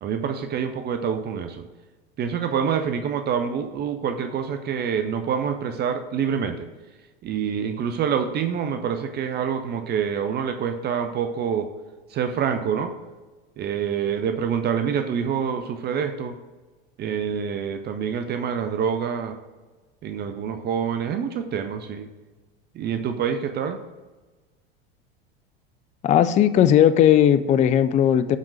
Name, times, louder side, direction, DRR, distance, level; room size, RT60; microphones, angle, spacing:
voice 1, 0.0-1.6 2.2-6.7 7.2-11.7 12.1-12.9 13.6-16.4 17.0-19.4 20.0-22.1 22.8-23.8, right 7 dB, 35° right, 7 dB, 0.6 m, -26 dB
voice 2, 26.0-28.4, left 10 dB, 25° left, 13 dB, 0.4 m, -17 dB
7.4 x 3.6 x 6.3 m, 1.2 s
hypercardioid pair, 85°, 29 cm